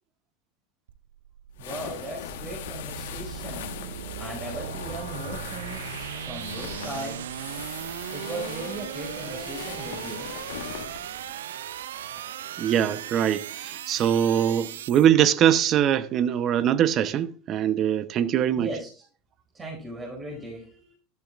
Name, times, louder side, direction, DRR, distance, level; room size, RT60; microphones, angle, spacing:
sound 1, 0.9-15.1, right 11 dB, 85° right, 0.4 m, -38 dB
sound 2, 1.5-11.4, left 9 dB, 80° left, 1.4 m, -40 dB
voice 1, 1.6-3.7 4.2-7.2 8.1-10.3 18.5-19.0 19.5-21.0, right 1 dB, 25° right, 5.2 m, -37 dB
voice 2, 12.6-18.7, right 10 dB, 45° right, 0.8 m, -22 dB
12.0 x 11.5 x 2.5 m
hypercardioid pair, 100°, 0 cm